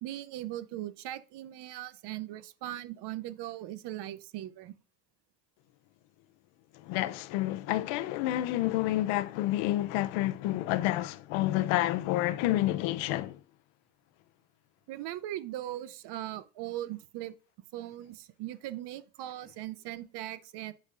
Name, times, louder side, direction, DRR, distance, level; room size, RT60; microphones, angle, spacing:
voice 1, 0.0-4.8 14.9-17.3 17.7-20.7, right 14 dB, 60° right, 0.6 m, -39 dB
voice 2, 6.9-13.4, left 15 dB, 85° left, 0.6 m, -29 dB
8.5 x 5.4 x 2.5 m
cardioid pair, 115°, 45 cm